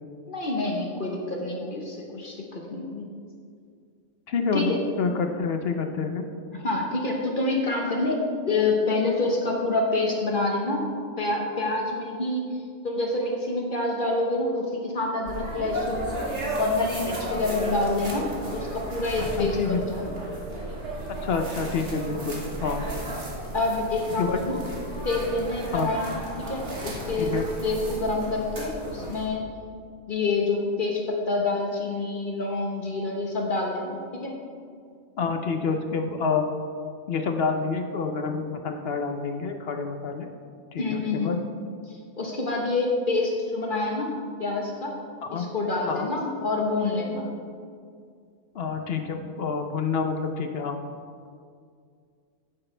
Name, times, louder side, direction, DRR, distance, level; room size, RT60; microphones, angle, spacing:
voice 1, 0.3-3.0 4.5-4.8 6.5-10.9 11.2-12.4 12.8-16.2 16.6-20.2 23.5-24.6 25.0-29.6 30.1-34.3 40.8-41.3 41.9-44.9 45.3-47.3, left 2 dB, 40° left, 0 dB, 1.2 m, -27 dB
voice 2, 4.3-6.3 19.2-19.8 21.2-22.8 24.2-24.4 25.7-25.9 27.2-27.5 35.2-36.5 37.1-40.3 40.7-41.4 45.2-45.5 45.9-46.1 48.5-50.8, left 5 dB, 55° left, 6 dB, 0.8 m, -28 dB
sound 1, 15.3-29.3, right 1 dB, 55° right, 1.8 m, -34 dB
10.0 x 8.8 x 3.3 m, 2.2 s
omnidirectional pair, 1.4 m